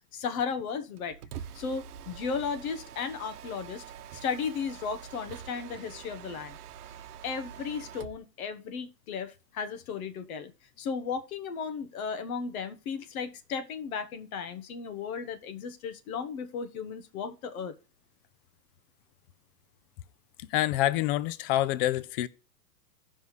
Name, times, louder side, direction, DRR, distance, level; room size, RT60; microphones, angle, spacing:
voice 1, 0.1-1.2 1.5-3.8 4.1-6.6 7.2-10.5 10.8-17.7, left 6 dB, 60° left, 1.2 m, -35 dB
Mechanisms, 1.0-8.2, right 9 dB, 70° right, 1.0 m, -45 dB
voice 2, 20.5-22.3, left 14 dB, 35° left, 0.5 m, -26 dB
16.0 x 5.6 x 3.1 m
hypercardioid pair, 135°, 49 cm